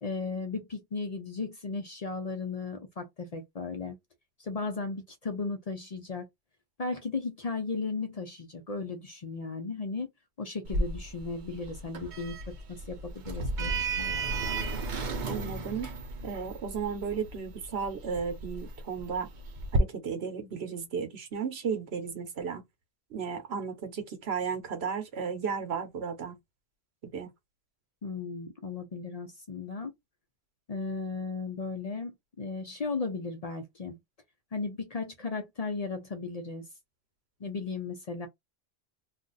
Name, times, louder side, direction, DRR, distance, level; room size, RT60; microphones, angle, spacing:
voice 1, 0.0-4.0 4.4-6.3 6.8-10.1 10.4-14.1 28.0-29.9 30.7-34.0 34.5-36.6 37.4-38.3, left 4 dB, 45° left, 0.6 m, -36 dB
Sliding door, 10.7-19.8, right 3 dB, 55° right, 0.7 m, -34 dB
voice 2, 15.2-15.9 16.2-19.3 19.7-22.6 23.1-26.4 27.0-27.3, right 6 dB, 75° right, 1.1 m, -34 dB
2.4 x 2.4 x 3.9 m
omnidirectional pair, 1.1 m